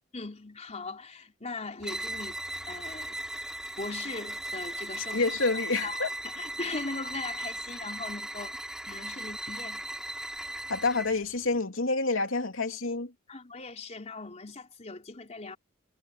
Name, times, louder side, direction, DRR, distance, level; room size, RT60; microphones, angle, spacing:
voice 1, 0.1-2.4 2.7-3.2 3.8-5.2 5.7-6.0 6.4-8.6 8.8-9.8 13.3-15.6, left 3 dB, 35° left, 3.7 m, -39 dB
sound 1, 1.8-11.2, right 1 dB, 5° right, 3.2 m, -37 dB
voice 2, 5.1-6.1 10.7-13.1, left 3 dB, 80° left, 3.2 m, -28 dB
head